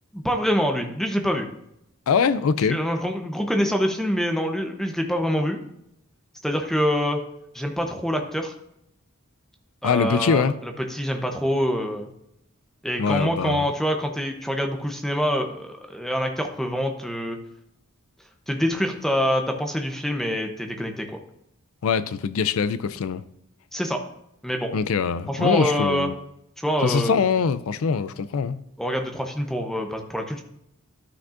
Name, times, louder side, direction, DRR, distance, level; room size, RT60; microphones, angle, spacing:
voice 1, 0.1-1.5 2.7-5.6 6.4-7.2 7.5-8.5 9.8-12.1 12.8-17.4 18.5-21.2 23.7-24.0 24.4-24.7 25.3-26.1 26.6-27.2 28.8-30.4, equal, ahead, 0.7 m, -25 dB
voice 2, 2.1-2.8 9.8-10.5 13.0-13.7 21.8-23.2 24.7-26.1 26.8-28.6, left 6 dB, 75° left, 0.4 m, -23 dB
12.5 x 5.9 x 2.5 m
head